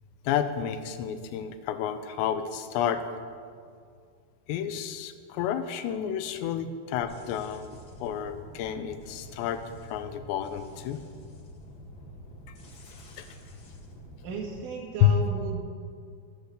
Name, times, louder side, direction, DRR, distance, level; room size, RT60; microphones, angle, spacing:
voice 1, 0.2-3.1 4.5-11.0 12.9-13.3 15.0-15.2, left 9 dB, 85° left, 9 dB, 2.9 m, -30 dB
sound 1, 7.0-14.6, equal, 40° left, 1.4 m, -47 dB
voice 2, 14.2-15.6, right 4 dB, 80° right, -1 dB, 4.0 m, -35 dB
16.0 x 6.6 x 8.1 m, 2.2 s
omnidirectional pair, 5.1 m